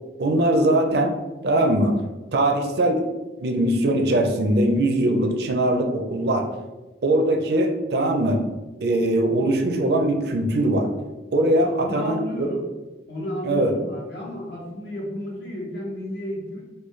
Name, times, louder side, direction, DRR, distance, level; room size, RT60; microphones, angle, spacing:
voice 1, 0.2-1.2 1.4-1.9 2.3-3.1 3.4-6.5 7.0-8.4 8.8-10.9 11.3-12.5 13.4-13.7, right 1 dB, 60° right, 4 dB, 0.5 m, -21 dB
voice 2, 11.6-12.7 13.1-16.6, left 1 dB, 65° left, -4 dB, 1.0 m, -32 dB
3.9 x 2.2 x 3.1 m, 1.1 s
head